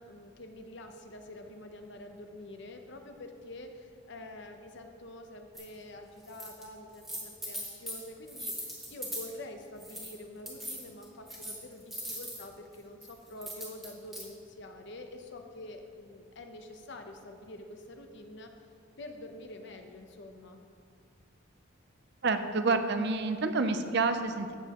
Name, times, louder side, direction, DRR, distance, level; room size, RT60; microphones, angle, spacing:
voice 1, 0.0-18.5 19.0-20.6, left 1 dB, 55° left, 5 dB, 0.8 m, -46 dB
sound 1, 5.5-5.6 6.2-6.7 6.9-9.3 9.8-10.1 10.5-12.4 13.0-14.2, equal, ahead, 1.5 m, -40 dB
voice 2, 22.2-24.5, right 3 dB, 50° right, 8 dB, 0.6 m, -28 dB
16.0 x 7.1 x 3.0 m, 2.2 s
head